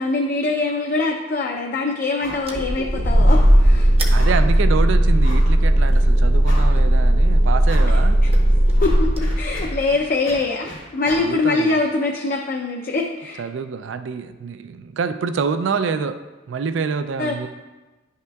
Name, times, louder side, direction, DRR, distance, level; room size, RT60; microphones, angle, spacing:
voice 1, 0.0-3.9 8.2-8.3 8.8-13.4 17.2-17.4, left 3 dB, 45° left, 1 dB, 0.5 m, -23 dB
sound 1, 2.2-2.5 2.8-2.9 3.2-3.6 4.2-4.5 5.2-5.6 6.0-6.1 6.4-6.9 7.6-8.0 8.4-11.3, left 1 dB, 80° left, 2.0 m, -37 dB
sound 2, 2.5-9.9, right 1 dB, 30° right, 0.7 m, -16 dB
voice 2, 4.1-8.2 11.1-11.8 13.4-16.2 16.5-17.5, right 5 dB, 65° right, 10 dB, 0.3 m, -26 dB
10.5 x 5.7 x 2.3 m, 1.2 s
head